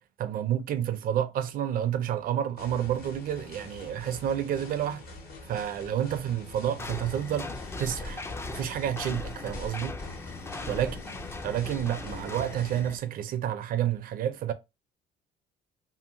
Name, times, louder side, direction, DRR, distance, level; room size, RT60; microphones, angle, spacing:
voice 1, 0.2-5.0 5.5-7.5 7.8-10.0 10.7-10.9 11.4-14.5, right 10 dB, 60° right, 0.5 m, -30 dB
sound 1, 2.6-12.8, left 2 dB, 65° left, 1.3 m, -46 dB
sound 2, 6.8-13.0, left 3 dB, 15° left, 0.3 m, -39 dB
2.8 x 2.7 x 2.6 m
cardioid pair, 110°, 17 cm